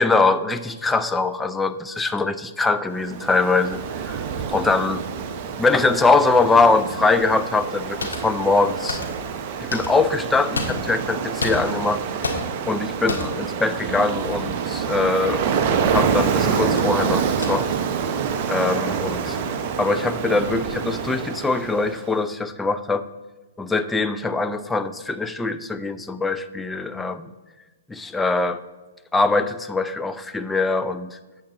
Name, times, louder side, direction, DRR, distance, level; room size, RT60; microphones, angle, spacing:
voice 1, 0.0-4.2 4.5-5.0 5.6-9.0 9.6-12.0 12.7-15.4 15.9-17.7 18.5-19.4 19.8-23.0 23.6-27.3 27.9-28.6 29.1-31.2, left 3 dB, 10° left, 10 dB, 0.5 m, -22 dB
Ocean, 3.0-22.1, right 6 dB, 40° right, 0.9 m, -27 dB
sound 1, 8.0-8.4 8.9-9.3 9.7-10.1 10.5-11.1 11.4-11.9 12.2-12.7 13.1-13.5 14.8-15.0 15.7-15.9 16.3-16.9 17.4-17.5, left 2 dB, 85° left, 1.6 m, -30 dB
8.6 x 7.8 x 4.1 m, 1.2 s
hypercardioid pair, 130°, 0 cm